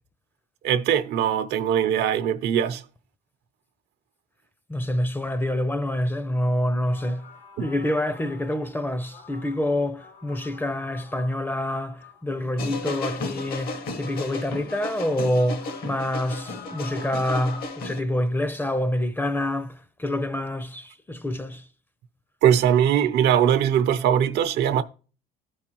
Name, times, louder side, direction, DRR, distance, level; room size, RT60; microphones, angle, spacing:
voice 1, 0.6-2.8 7.6-7.7 22.4-24.8, right 9 dB, 80° right, 0.7 m, -21 dB
voice 2, 4.7-7.2 7.6-19.7 20.0-21.6, left 1 dB, 10° left, 0.5 m, -27 dB
sound 1, 6.9-12.4 14.1-14.2 15.0-17.7, left 5 dB, 90° left, 1.8 m, -47 dB
sound 2, 12.6-18.0, left 3 dB, 65° left, 1.2 m, -34 dB
13.0 x 4.8 x 2.9 m
cardioid pair, 110°, 17 cm